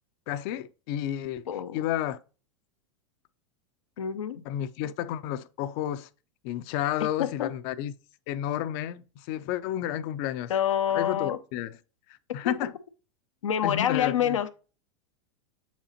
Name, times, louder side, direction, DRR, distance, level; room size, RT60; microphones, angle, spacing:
voice 1, 0.3-1.4 1.7-2.2 4.5-6.1 6.4-7.9 8.3-10.5 10.9-11.7 12.3-12.7 13.6-14.4, left 11 dB, 55° left, 0.6 m, -31 dB
voice 2, 1.5-1.8 4.0-4.4 7.2-7.5 10.5-11.4 12.4-12.5 13.4-14.5, left 9 dB, 90° left, 0.8 m, -27 dB
7.2 x 4.9 x 2.9 m
hypercardioid pair, 115°, 16 cm